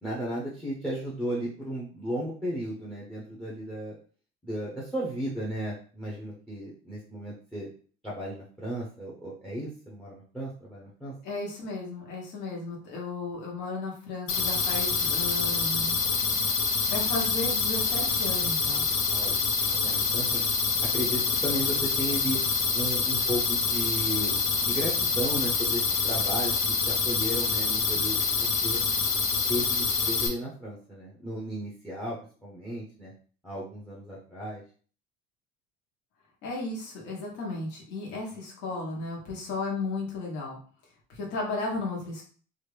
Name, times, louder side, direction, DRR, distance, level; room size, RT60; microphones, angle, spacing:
voice 1, 0.0-3.9 4.4-7.7 8.0-11.1 19.1-19.4 19.8-20.4 20.8-22.4 22.7-24.3 24.6-28.8 29.5-33.1 33.4-34.6, equal, 5° left, -4 dB, 0.6 m, -34 dB
voice 2, 11.2-16.0 16.9-18.9 36.4-40.6 41.1-42.2, left 2 dB, 65° left, -2 dB, 1.2 m, -34 dB
sound 1, 14.3-30.3, left 5 dB, 85° left, 0.9 m, -26 dB
3.0 x 2.5 x 3.2 m, 0.42 s
cardioid pair, 165°, 20 cm